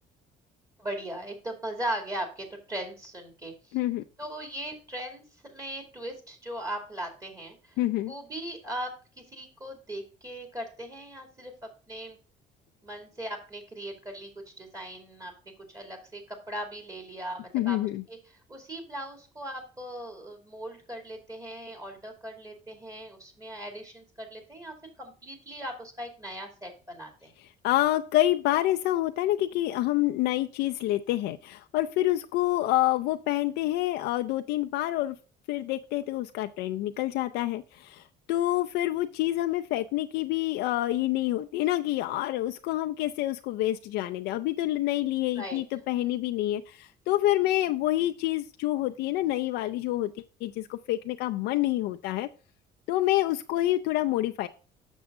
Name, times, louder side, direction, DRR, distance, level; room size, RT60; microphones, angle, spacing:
voice 1, 0.8-3.8 4.2-8.9 9.3-11.5 11.9-12.2 12.8-14.3 14.6-15.3 15.7-17.8 18.1-18.2 18.5-27.3 45.4-45.6, right 1 dB, 20° right, 4 dB, 2.3 m, -38 dB
voice 2, 3.7-4.0 7.8-8.1 17.5-18.0 27.6-35.2 35.5-50.1 50.4-52.3 52.9-54.5, left 15 dB, 90° left, 8 dB, 0.5 m, -27 dB
7.3 x 6.2 x 3.6 m, 0.35 s
cardioid pair, 110°, 17 cm